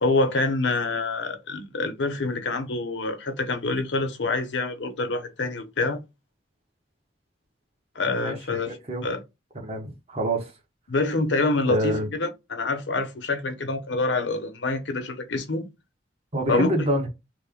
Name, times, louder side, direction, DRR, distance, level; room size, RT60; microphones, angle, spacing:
voice 1, 0.0-6.0 8.0-8.8 9.0-9.2 10.9-15.6 16.5-16.7, left 3 dB, 85° left, 0.7 m, -26 dB
voice 2, 8.7-9.1 9.5-10.5 11.7-12.1 16.3-17.1, right 1 dB, 35° right, 0.9 m, -26 dB
3.2 x 2.1 x 3.6 m
head